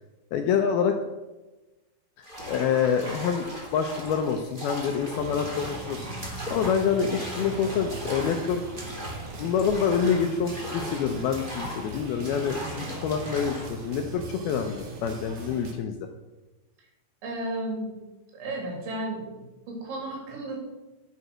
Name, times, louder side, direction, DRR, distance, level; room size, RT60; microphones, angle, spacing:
voice 1, 0.3-0.9 2.2-8.6 9.4-16.0, left 7 dB, 80° left, 6 dB, 2.3 m, -27 dB
sound 1, 2.2-13.8, equal, 15° right, 2.0 m, -38 dB
sound 2, 5.1-15.7, right 3 dB, 55° right, 1.9 m, -40 dB
sound 3, 6.6-15.6, right 1 dB, 35° right, 2.7 m, -47 dB
voice 2, 17.2-18.0 18.3-19.2 19.7-20.6, right 1 dB, 80° right, 0 dB, 5.6 m, -33 dB
10.5 x 9.6 x 6.3 m, 1.1 s
omnidirectional pair, 5.2 m